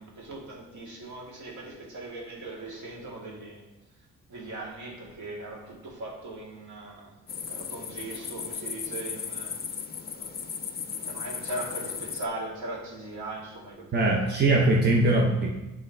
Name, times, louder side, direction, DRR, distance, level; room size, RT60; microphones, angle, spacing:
voice 1, 0.0-3.6 4.3-7.2 7.5-9.6 10.1-10.4 11.0-14.0, right 2 dB, 70° right, -2 dB, 2.1 m, -39 dB
sound 1, 7.3-12.3, left 7 dB, 30° left, 0.5 m, -36 dB
voice 2, 13.9-15.5, right 2 dB, 35° right, -1 dB, 1.0 m, -21 dB
10.0 x 3.7 x 3.5 m, 1.0 s
cardioid pair, 90°, 30 cm